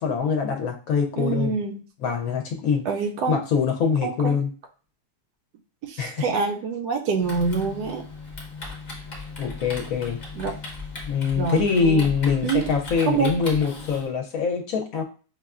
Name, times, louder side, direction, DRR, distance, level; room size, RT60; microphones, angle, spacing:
voice 1, 0.0-1.6 2.0-2.9 3.3-4.5 6.0-6.2 9.4-10.2 11.1-15.0, left 6 dB, 70° left, 3 dB, 1.0 m, -24 dB
voice 2, 1.2-1.8 2.9-3.4 4.0-4.4 5.8-8.0 10.3-10.6 11.4-12.1 12.4-12.7 13.1-13.4, right 5 dB, 85° right, 4 dB, 1.2 m, -26 dB
Typing, 7.2-14.1, left 3 dB, 40° left, 0.7 m, -37 dB
5.4 x 2.2 x 2.4 m, 0.38 s
omnidirectional pair, 1.7 m